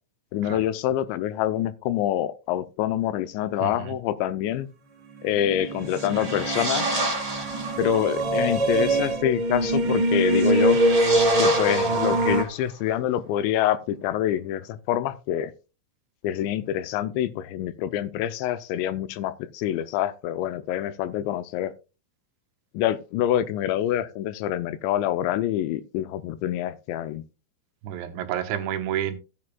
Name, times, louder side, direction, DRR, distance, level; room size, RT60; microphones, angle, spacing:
voice 1, 0.3-4.7 5.2-7.0 7.8-10.8 11.4-15.5 16.2-21.7 22.7-27.2, left 11 dB, 80° left, 2.8 m, -26 dB
voice 2, 3.6-3.9 27.8-29.2, right 10 dB, 85° right, 3.2 m, -30 dB
sound 1, 5.2-12.4, right 1 dB, 65° right, 1.3 m, -24 dB
sound 2, 5.8-7.9 10.3-12.6, right 2 dB, 15° right, 1.2 m, -29 dB
15.0 x 8.6 x 2.3 m
omnidirectional pair, 5.4 m